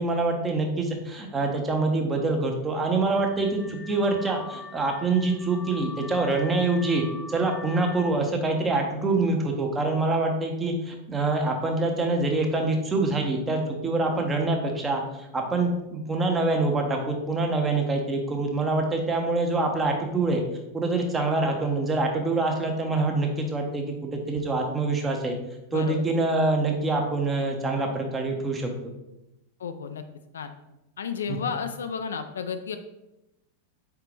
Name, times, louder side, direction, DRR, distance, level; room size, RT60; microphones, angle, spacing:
voice 1, 0.0-20.4 20.7-25.3 25.7-28.9 31.3-31.4, right 3 dB, 15° right, 2 dB, 0.8 m, -25 dB
Car / Alarm, 2.7-8.2, left 3 dB, 10° left, 1.0 m, -43 dB
voice 2, 29.6-30.0 30.3-30.5 31.0-32.8, left 6 dB, 65° left, 9 dB, 0.3 m, -32 dB
4.7 x 3.4 x 3.3 m, 0.92 s
figure-of-eight pair, 90°, 0 cm